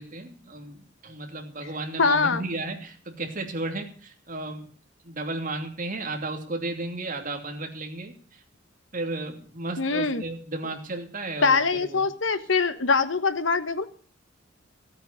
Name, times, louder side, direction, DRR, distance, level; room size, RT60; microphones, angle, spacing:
voice 1, 0.0-4.7 5.0-8.4 8.9-12.0, right 2 dB, 45° right, 3 dB, 2.9 m, -34 dB
voice 2, 2.0-2.4 9.8-10.2 11.4-13.9, left 4 dB, 90° left, 11 dB, 1.3 m, -23 dB
16.0 x 8.8 x 6.8 m, 0.43 s
head